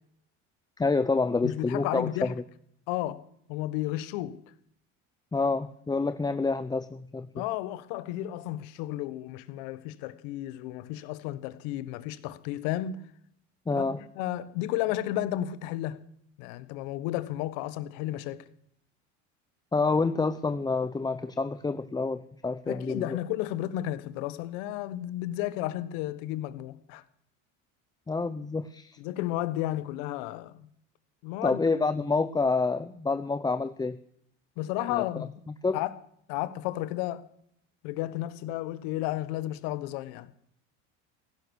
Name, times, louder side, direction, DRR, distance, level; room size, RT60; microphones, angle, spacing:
voice 1, 0.8-2.3 5.3-7.3 13.7-14.0 19.7-23.1 28.1-29.0 31.4-34.0 34.9-35.0 35.6-35.8, left 3 dB, 10° left, 0.6 m, -28 dB
voice 2, 1.4-2.4 2.9-4.4 7.3-13.0 13.8-13.9 14.1-16.1 16.4-18.4 22.7-27.0 29.0-30.7 31.2-31.6 34.6-35.3 35.7-35.9 36.3-37.3 37.8-40.3, left 14 dB, 75° left, 1.3 m, -33 dB
16.5 x 11.0 x 6.4 m
supercardioid pair, 95°, 37 cm